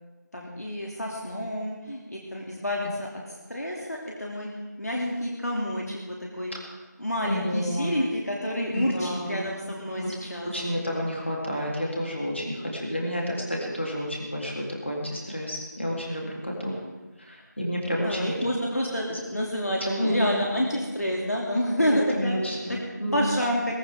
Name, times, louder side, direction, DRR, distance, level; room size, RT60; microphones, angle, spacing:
voice 1, 0.3-3.1 3.5-4.5 4.8-6.5 7.0-10.5 18.0-22.4 22.7-22.8 23.1-23.8, equal, 60° left, -2 dB, 2.8 m, -29 dB
voice 2, 7.3-8.1 8.7-9.5 10.0-10.1 10.4-16.8 17.2-18.4 19.1-19.4 20.0-20.3 22.1-23.4, equal, 40° left, -2 dB, 3.5 m, -30 dB
21.5 x 14.0 x 3.7 m, 1.2 s
figure-of-eight pair, 180°, 10 cm